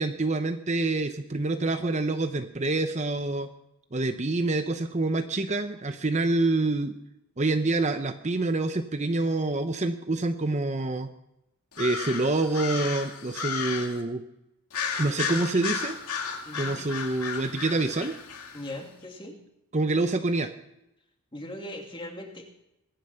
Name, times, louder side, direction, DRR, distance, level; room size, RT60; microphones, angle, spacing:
voice 1, 0.0-3.5 3.9-7.0 7.4-11.1 11.8-14.2 15.0-16.0 16.5-18.1 19.7-20.5, right 2 dB, 30° right, 7 dB, 0.8 m, -27 dB
sound 1, 11.7-14.0 14.7-18.7, left 6 dB, 90° left, 2.4 m, -34 dB
voice 2, 16.4-16.9 18.5-19.4 21.3-22.4, left 1 dB, 20° left, 2 dB, 2.6 m, -39 dB
22.0 x 10.0 x 5.7 m, 0.86 s
head